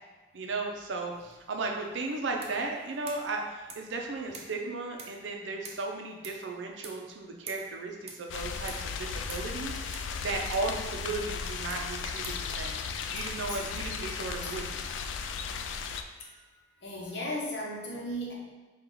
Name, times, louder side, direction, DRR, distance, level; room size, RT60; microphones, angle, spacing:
voice 1, 0.3-12.8 13.1-14.7, right 3 dB, 75° right, 1 dB, 0.6 m, -35 dB
sound 1, 1.1-15.8, right 4 dB, 35° right, 0.4 m, -52 dB
sound 2, 8.3-16.0, left 5 dB, 80° left, 0.3 m, -36 dB
voice 2, 16.8-18.3, equal, 65° left, -3 dB, 1.0 m, -36 dB
4.5 x 2.4 x 3.8 m, 1.3 s
head